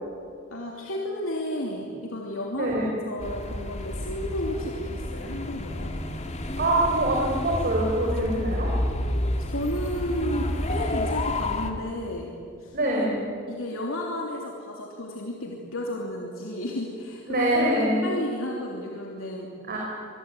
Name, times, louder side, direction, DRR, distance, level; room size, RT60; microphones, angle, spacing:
voice 1, 0.5-2.8 3.0-5.9 9.4-12.3 12.6-12.8 13.5-17.5 18.0-19.5, left 1 dB, 90° left, -1 dB, 3.1 m, -32 dB
voice 2, 2.5-2.9 6.6-8.7 12.7-13.2 17.3-18.0 19.7-19.8, right 1 dB, 50° right, -3 dB, 5.2 m, -24 dB
sound 1, 3.2-11.7, left 1 dB, 35° left, 2.3 m, -30 dB
25.5 x 22.5 x 9.3 m, 2.4 s
head